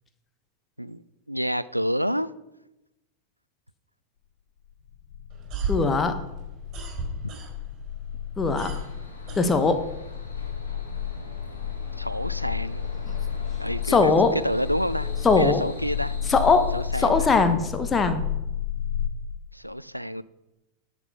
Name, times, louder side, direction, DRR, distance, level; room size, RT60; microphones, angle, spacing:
voice 1, 1.3-2.3 12.0-12.8 13.6-14.1 14.4-15.1 15.4-16.1 16.7-17.4 19.5-20.2, equal, 90° right, 17 dB, 0.4 m, -28 dB
sound 1, 4.7-19.1, left 8 dB, 60° left, 1.2 m, -32 dB
sound 2, 5.3-7.9 8.2-10.1, right 2 dB, 35° right, 4.5 m, -33 dB
voice 2, 5.7-6.2 8.4-8.8 9.4-9.8 13.9-14.3 15.2-15.6 16.3-16.7 17.0-18.2, left 4 dB, 20° left, 8 dB, 1.0 m, -20 dB
sound 3, 8.7-16.9, left 1 dB, 75° left, 2.0 m, -44 dB
11.0 x 7.4 x 5.7 m, 0.95 s
figure-of-eight pair, 90°, 0 cm